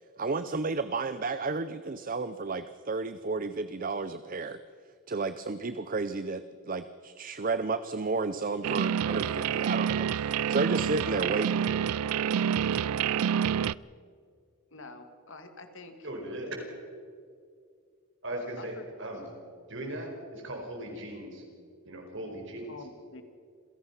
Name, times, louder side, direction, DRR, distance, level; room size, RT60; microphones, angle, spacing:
voice 1, 0.2-4.6 5.1-11.7, right 3 dB, 40° right, 12 dB, 0.6 m, -32 dB
sound 1, 8.6-13.7, right 8 dB, 85° right, 0.4 m, -28 dB
voice 2, 14.7-16.1 18.6-18.9 22.7-23.2, left 2 dB, 60° left, 7 dB, 2.1 m, -46 dB
voice 3, 16.0-16.6 18.2-18.7 19.0-19.3 19.7-21.4 21.8-22.7, right 1 dB, 55° right, 1 dB, 5.1 m, -38 dB
27.5 x 17.0 x 5.6 m, 2.2 s
head